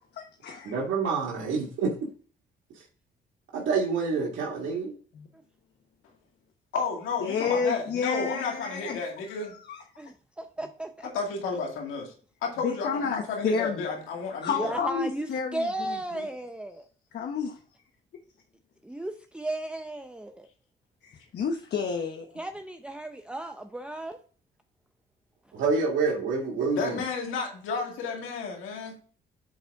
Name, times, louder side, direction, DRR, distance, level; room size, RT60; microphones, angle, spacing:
voice 1, 0.1-0.8 5.1-5.3 7.2-9.0 9.3-9.8 12.6-13.8 14.4-16.3 17.1-17.6 21.0-22.4, left 6 dB, 60° left, 4 dB, 0.9 m, -31 dB
voice 2, 0.6-2.1 3.5-4.9 8.7-8.8 25.5-27.0, right 4 dB, 75° right, -3 dB, 1.8 m, -27 dB
voice 3, 6.7-9.5 11.1-12.1 12.4-14.8 26.7-29.0, left 4 dB, 90° left, 0 dB, 2.2 m, -32 dB
voice 4, 10.0-11.1 14.5-16.9 18.8-20.5 22.4-24.2, right 1 dB, 5° right, 6 dB, 0.5 m, -35 dB
8.7 x 4.0 x 3.5 m, 0.42 s
cardioid pair, 90°, 20 cm